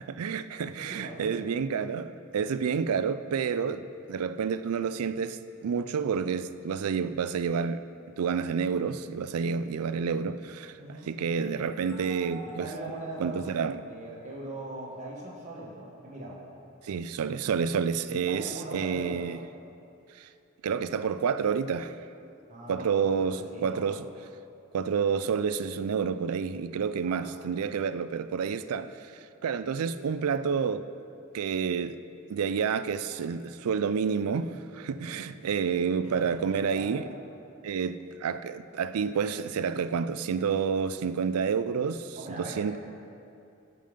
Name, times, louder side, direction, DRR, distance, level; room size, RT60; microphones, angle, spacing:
voice 1, 0.1-3.8 4.1-7.8 8.2-12.7 13.2-13.8 16.8-19.4 20.2-20.3 20.6-22.0 22.7-24.1 24.7-29.1 29.4-30.8 31.3-32.0 32.3-37.1 37.6-42.8, right 6 dB, 90° right, 0.4 m, -29 dB
voice 2, 0.8-1.4 3.6-3.8 10.8-11.1 12.4-13.5 13.9-16.4 18.1-19.3 22.5-23.8 27.0-27.3 35.0-35.2 36.0-36.9 42.2-42.8, right 2 dB, 35° right, 1.5 m, -41 dB
sound 1, 11.3-14.7, right 1 dB, ahead, 1.7 m, -50 dB
13.0 x 5.4 x 5.1 m
head